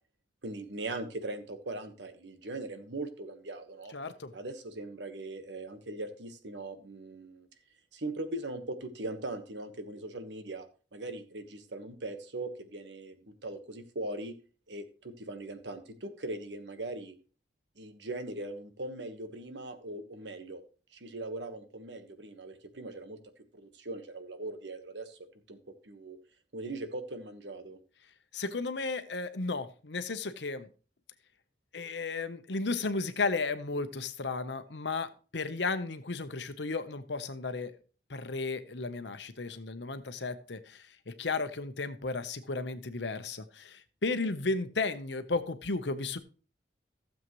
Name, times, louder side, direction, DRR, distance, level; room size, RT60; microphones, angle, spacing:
voice 1, 0.4-3.9 4.3-7.5 7.9-10.7 10.9-14.3 14.7-17.1 17.8-20.6 20.9-23.2 23.5-25.2 25.5-25.6 25.8-26.2 26.5-27.8, right 2 dB, 80° right, 8 dB, 1.4 m, -40 dB
voice 2, 3.9-4.3 28.3-30.7 31.7-37.7 38.1-46.2, left 3 dB, 80° left, 11 dB, 0.9 m, -34 dB
15.5 x 7.4 x 3.1 m, 0.38 s
head